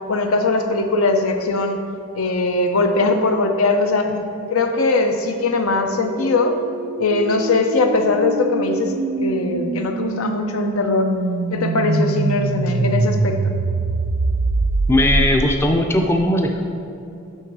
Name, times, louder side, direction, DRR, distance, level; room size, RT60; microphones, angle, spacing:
voice 1, 0.1-1.8 2.1-4.2 4.5-6.5 7.0-11.1 11.5-13.6, left 3 dB, 80° left, 6 dB, 0.6 m, -20 dB
sound 1, 5.6-15.7, right 3 dB, 80° right, 0.4 m, -24 dB
voice 2, 14.9-16.6, left 1 dB, 10° left, 3 dB, 0.4 m, -18 dB
9.9 x 3.6 x 4.7 m, 2.5 s
head